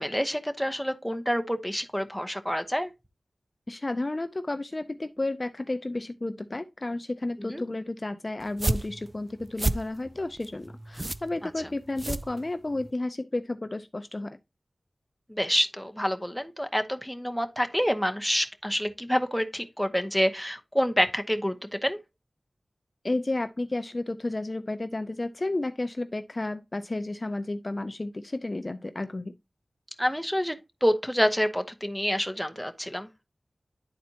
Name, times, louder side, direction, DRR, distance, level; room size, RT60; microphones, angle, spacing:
voice 1, 0.0-2.9 7.4-7.6 11.4-11.5 15.3-22.0 30.0-33.1, equal, ahead, 0.9 m, -27 dB
voice 2, 3.7-14.4 23.0-29.3, left 2 dB, 40° left, 0.5 m, -32 dB
sound 1, 8.4-12.9, right 2 dB, 35° right, 0.3 m, -32 dB
10.5 x 4.2 x 2.8 m
wide cardioid pair, 55°, 0 cm